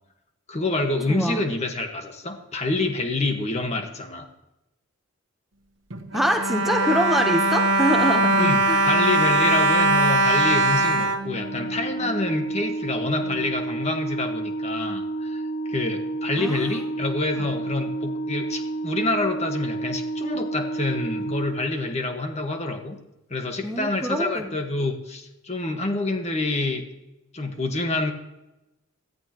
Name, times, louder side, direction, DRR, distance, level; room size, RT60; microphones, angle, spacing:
voice 1, 0.5-4.3 8.4-15.4 15.7-23.0 23.3-26.9 27.3-28.1, left 2 dB, 30° left, 4 dB, 1.5 m, -27 dB
voice 2, 1.1-1.4 6.1-8.3 8.7-8.8 16.4-16.7 17.3-17.5 23.6-24.5, equal, ahead, 4 dB, 1.0 m, -25 dB
Bowed string instrument, 5.9-12.1 12.8-12.9 13.2-13.4, right 2 dB, 60° right, 1.3 m, -21 dB
Organ, 11.2-22.1, right 2 dB, 70° left, 1.9 m, -30 dB
17.5 x 13.5 x 3.1 m, 0.93 s
head